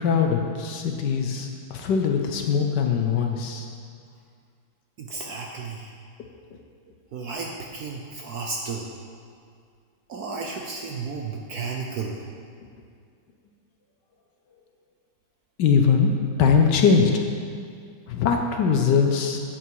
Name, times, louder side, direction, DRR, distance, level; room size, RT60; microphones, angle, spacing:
voice 1, 0.0-3.7 15.6-16.1 16.4-17.2 18.1-19.4, left 6 dB, 65° left, 3 dB, 1.2 m, -21 dB
voice 2, 5.0-5.9 7.1-8.9 10.1-12.2, right 4 dB, 65° right, 0 dB, 1.0 m, -33 dB
8.7 x 8.3 x 4.7 m, 2.2 s
omnidirectional pair, 2.2 m